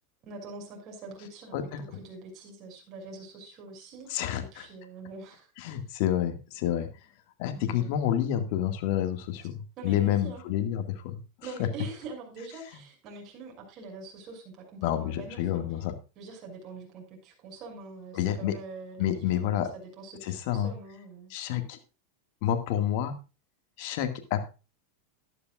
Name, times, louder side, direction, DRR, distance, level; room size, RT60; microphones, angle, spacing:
voice 1, 0.2-5.5 7.5-8.0 9.8-10.4 11.4-15.6 16.2-21.3, right 3 dB, 45° right, 1 dB, 6.5 m, -44 dB
voice 2, 1.5-2.0 4.1-4.7 5.6-6.9 7.4-11.2 11.6-11.7 14.8-15.9 18.1-18.5 19.0-19.7 20.2-20.7 21.3-21.8 22.4-23.2 23.8-24.4, left 11 dB, 60° left, 7 dB, 2.0 m, -29 dB
14.0 x 12.0 x 2.5 m, 0.31 s
hypercardioid pair, 115°, 0 cm